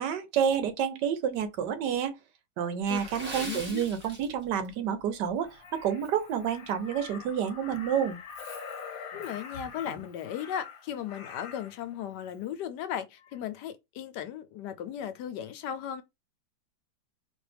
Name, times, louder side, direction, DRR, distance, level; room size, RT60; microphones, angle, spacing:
voice 1, 0.0-2.2 2.6-8.2, right 8 dB, 80° right, 1.4 m, -29 dB
Water / Splash splatter, 2.9-4.7 5.0-5.3 5.8-6.0 6.5-6.6, right 1 dB, 5° right, 1.8 m, -41 dB
voice 2, 3.3-3.8 9.1-16.0, left 9 dB, 80° left, 1.3 m, -36 dB
Crow, 5.4-11.8 13.2-13.4, left 6 dB, 60° left, 1.2 m, -44 dB
4.1 x 2.9 x 3.3 m
omnidirectional pair, 1.8 m